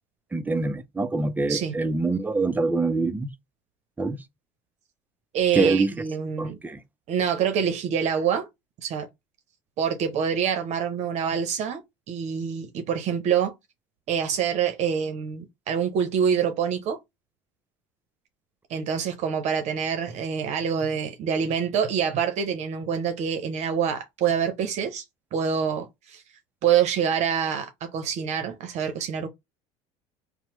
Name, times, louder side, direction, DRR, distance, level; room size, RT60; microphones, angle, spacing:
voice 1, 0.3-3.3 4.0-4.2 5.5-5.9 6.4-6.8, right 3 dB, 10° right, 0.4 m, -25 dB
voice 2, 5.3-6.6 7.1-8.5 8.8-9.1 9.8-11.8 12.1-13.5 14.1-17.0 18.7-25.0 25.3-26.2 26.6-29.3, right 7 dB, 55° right, 0.7 m, -26 dB
2.8 x 2.0 x 3.0 m
hypercardioid pair, 80°, 14 cm